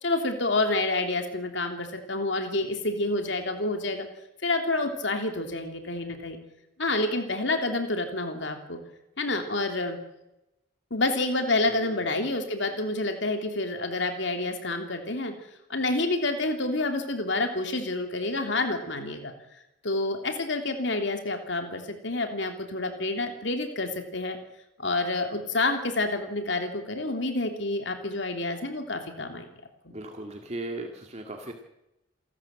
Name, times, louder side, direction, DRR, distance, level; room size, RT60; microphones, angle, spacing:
voice 1, 0.0-4.1 4.4-6.4 6.8-8.8 9.2-10.0 10.9-15.3 15.7-19.3 19.8-24.4 24.8-29.5 29.8-29.9, left 2 dB, 65° left, 5 dB, 3.1 m, -28 dB
voice 2, 11.6-12.1 29.9-31.5, right 2 dB, 35° right, 3 dB, 2.1 m, -38 dB
28.0 x 13.5 x 7.7 m, 0.90 s
head